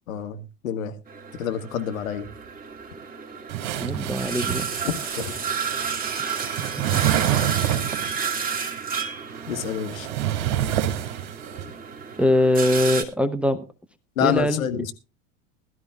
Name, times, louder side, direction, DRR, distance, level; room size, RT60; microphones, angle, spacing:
voice 1, 0.1-0.9 1.4-2.3 4.9-5.4 9.5-10.1 14.2-14.9, left 9 dB, 65° left, 1.8 m, -27 dB
sound 1, 1.1-13.0, right 6 dB, 20° right, 2.4 m, -32 dB
sound 2, 3.5-8.2 9.2-11.6, right 12 dB, 45° right, 2.9 m, -28 dB
voice 2, 3.8-4.6 6.2-7.0 12.2-13.6 14.2-14.7, left 1 dB, 5° right, 0.9 m, -23 dB
21.0 x 12.5 x 2.4 m
figure-of-eight pair, 85°, 44 cm